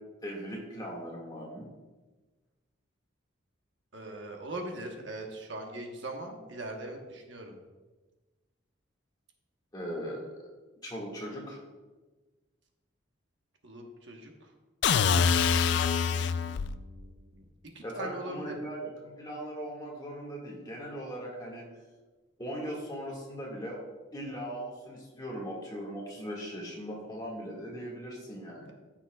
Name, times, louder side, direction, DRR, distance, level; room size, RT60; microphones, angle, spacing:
voice 1, 0.2-1.6 9.7-10.5 10.8-11.6 17.8-21.6 22.4-23.8 24.1-28.7, equal, 20° left, -3 dB, 1.8 m, -39 dB
voice 2, 3.9-7.6 13.6-14.5 15.4-17.5 17.7-18.6, right 1 dB, 65° right, 2 dB, 1.1 m, -41 dB
sound 1, 14.8-16.8, left 6 dB, 60° left, 0.3 m, -25 dB
13.5 x 6.0 x 2.3 m, 1.3 s
head